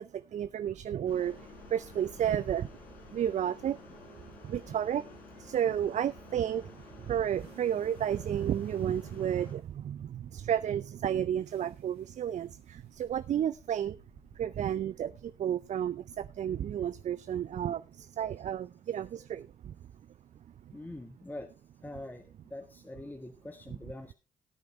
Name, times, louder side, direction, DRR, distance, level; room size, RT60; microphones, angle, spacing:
voice 1, 0.0-2.7 3.1-3.8 4.4-5.0 5.3-14.0 14.3-19.8, right 10 dB, 50° right, 15 dB, 0.5 m, -32 dB
sound 1, 0.8-18.9, right 4 dB, 80° right, 3.2 m, -62 dB
sound 2, 1.1-9.5, left 3 dB, 75° left, 4.5 m, -52 dB
voice 2, 20.7-21.5 21.8-24.1, left 1 dB, 10° left, 7 dB, 1.4 m, -44 dB
17.0 x 9.4 x 3.2 m, 0.29 s
figure-of-eight pair, 40°, 16 cm